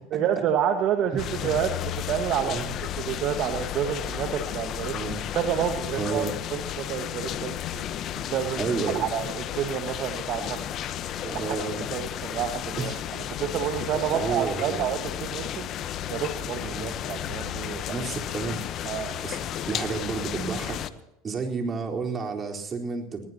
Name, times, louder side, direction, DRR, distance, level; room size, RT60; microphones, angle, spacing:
voice 1, 0.1-1.7 2.1-2.6 3.0-4.9 5.3-6.2 6.5-7.9 8.2-8.6 8.9-10.6 11.2-11.4 11.9-12.9 13.4-15.7 16.1-17.8 18.8-19.1, right 9 dB, 50° right, 6 dB, 1.6 m, -29 dB
sound 1, 1.2-20.9, left 11 dB, 45° left, 1.0 m, -33 dB
voice 2, 6.0-6.3 8.6-9.0 11.3-11.9 12.8-13.0 14.1-14.8 16.6-16.9 17.9-18.6 19.2-19.4 19.7-20.8 21.2-23.3, right 5 dB, 30° right, 1 dB, 4.1 m, -31 dB
20.0 x 19.5 x 2.9 m, 0.88 s
hypercardioid pair, 95°, 0 cm